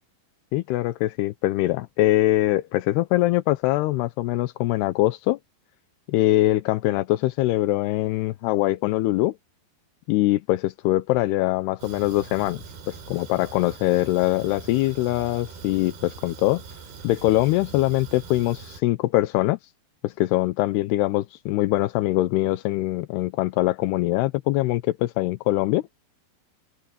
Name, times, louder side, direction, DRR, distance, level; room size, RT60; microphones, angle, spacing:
voice 1, 0.5-5.4 6.1-9.3 10.1-16.6 17.0-19.6 20.0-25.8, left 17 dB, 80° left, 2.5 m, -23 dB
Fire, 11.8-18.8, right 5 dB, 55° right, 6.0 m, -42 dB
omnidirectional pair, 5.3 m